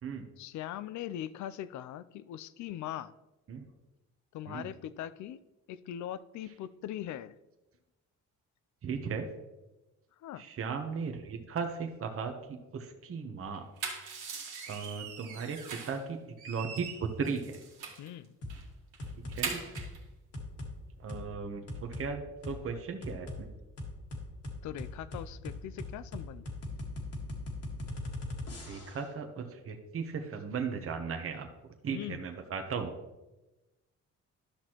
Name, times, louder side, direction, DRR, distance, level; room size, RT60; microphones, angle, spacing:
voice 1, 0.4-3.1 4.3-5.4 5.7-7.3 10.2-10.5 18.0-18.4 24.6-26.5 31.9-32.2, left 11 dB, 70° left, 15 dB, 0.5 m, -41 dB
voice 2, 8.8-9.3 10.4-13.6 14.7-15.6 15.9-16.2 16.4-17.6 19.3-19.6 21.0-23.5 28.6-31.5 31.8-32.9, right 5 dB, 45° right, 5 dB, 1.0 m, -36 dB
sound 1, 13.5-16.0 16.4-18.1 18.5-18.6 18.9-20.0, right 5 dB, 85° right, 1.8 m, -41 dB
sound 2, 18.4-18.6 19.0-19.4 19.7-19.9 20.3-20.7 21.1-21.2 21.7-22.1 22.4-22.6 23.0-23.4 23.8-29.1, left 2 dB, 55° left, 1.8 m, -39 dB
11.5 x 6.1 x 3.0 m, 1.0 s
cardioid pair, 90°, 30 cm